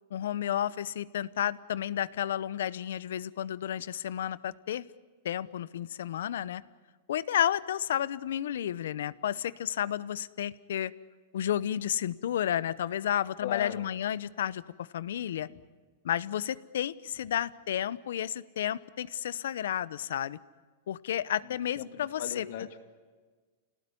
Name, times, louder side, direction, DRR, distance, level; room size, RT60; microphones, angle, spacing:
voice 1, 0.1-4.8 5.2-6.6 7.1-10.9 11.3-15.5 16.0-20.4 20.9-22.5, left 10 dB, 80° left, 18 dB, 0.8 m, -32 dB
voice 2, 13.4-13.8 15.5-15.6 21.4-22.8, left 10 dB, 60° left, 8 dB, 2.3 m, -39 dB
28.5 x 18.5 x 9.9 m, 1.4 s
hypercardioid pair, 135°, 0 cm